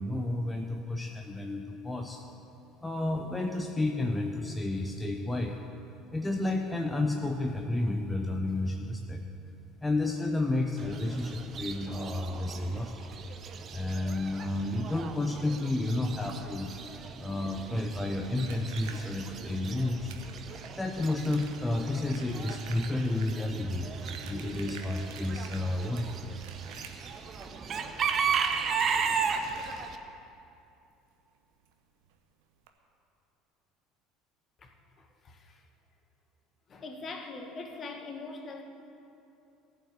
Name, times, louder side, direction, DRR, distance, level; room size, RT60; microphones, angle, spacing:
voice 1, 0.0-2.2 2.8-5.6 6.1-9.2 9.8-13.1 13.7-16.7 17.2-20.1 20.8-23.9 24.3-26.1, left 2 dB, 15° left, 2 dB, 0.9 m, -31 dB
Chicken rooster / Bird, 10.8-30.0, right 6 dB, 40° right, 0.8 m, -36 dB
sound 1, 17.7-30.2 31.6-31.7 32.0-32.2 32.6-32.7, right 7 dB, 70° right, 1.0 m, -50 dB
voice 2, 35.0-35.6 36.7-38.6, left 3 dB, 40° left, 4 dB, 1.4 m, -42 dB
15.0 x 5.8 x 8.2 m, 2.8 s
hypercardioid pair, 65°, 0 cm